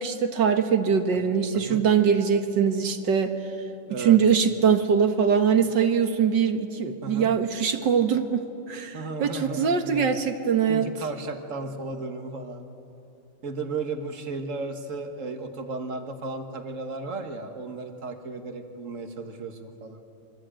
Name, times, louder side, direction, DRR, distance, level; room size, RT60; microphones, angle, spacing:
voice 1, 0.0-3.3 4.0-8.4 8.7-9.0 9.2-10.9, right 7 dB, 55° right, 7 dB, 2.0 m, -22 dB
voice 2, 3.9-4.2 7.0-7.4 8.9-10.1 10.7-12.7 13.4-20.0, right 3 dB, 40° right, 6 dB, 1.8 m, -34 dB
28.0 x 24.0 x 9.0 m, 2.9 s
omnidirectional pair, 2.4 m